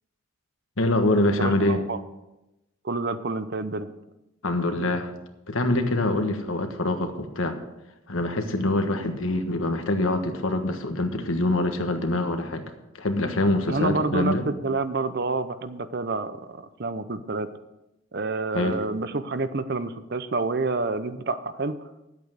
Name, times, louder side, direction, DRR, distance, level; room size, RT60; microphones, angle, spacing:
voice 1, 0.8-1.8 4.4-5.1 5.5-7.6 8.1-12.6 13.0-14.5 18.5-18.8, left 1 dB, 80° left, 6 dB, 1.4 m, -25 dB
voice 2, 1.4-2.0 2.8-3.9 13.7-14.3 14.6-16.4 16.8-17.5 18.1-21.8, right 3 dB, 50° right, 12 dB, 0.7 m, -28 dB
11.5 x 8.3 x 6.4 m, 0.95 s
head